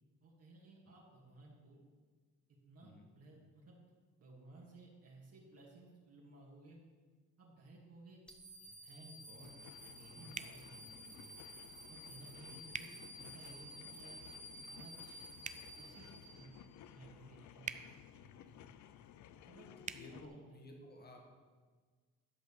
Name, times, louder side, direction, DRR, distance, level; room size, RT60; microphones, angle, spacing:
voice 1, 0.2-1.8 2.7-3.8 4.2-6.8 7.4-8.2 8.6-9.5 9.9-11.3 11.9-12.9 13.2-14.2 14.7-15.2 15.8-16.5 16.9-17.7 18.1-18.7 19.5-19.7 20.1-20.6, right 2 dB, 55° right, -4 dB, 2.6 m, -58 dB
sound 1, 8.3-16.7, equal, 5° left, 1.5 m, -53 dB
sound 2, 9.3-20.2, left 10 dB, 70° left, 0.6 m, -57 dB
sound 3, 10.3-10.6 12.7-12.9 15.4-15.6 17.6-17.8 19.8-20.0, right 5 dB, 25° right, 0.5 m, -43 dB
voice 2, 19.8-21.4, left 1 dB, 30° left, 1 dB, 2.1 m, -56 dB
11.5 x 5.3 x 6.8 m, 1.5 s
cardioid pair, 90°, 30 cm